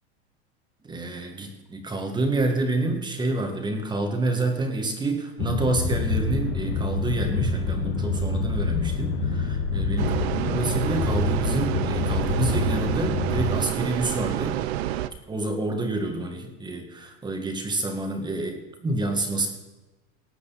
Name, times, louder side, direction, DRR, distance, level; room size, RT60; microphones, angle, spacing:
voice 1, 0.8-14.6 15.3-19.5, right 2 dB, 15° right, 4 dB, 2.0 m, -28 dB
sound 1, 5.4-13.5, left 3 dB, 60° left, 2.1 m, -26 dB
sound 2, 10.0-15.1, right 13 dB, 75° right, 0.8 m, -29 dB
19.0 x 8.3 x 4.2 m, 1.1 s
supercardioid pair, 145°, 33 cm